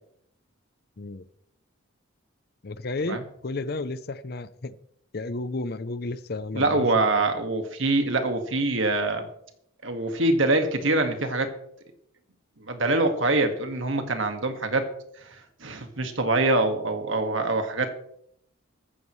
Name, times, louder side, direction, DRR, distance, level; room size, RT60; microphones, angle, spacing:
voice 1, 2.6-4.7 5.1-7.2, left 2 dB, 45° left, 15 dB, 0.6 m, -32 dB
voice 2, 6.5-9.3 9.8-11.5 12.6-14.9 15.2-17.9, right 2 dB, 65° right, 6 dB, 1.8 m, -24 dB
15.0 x 14.5 x 3.2 m, 0.73 s
head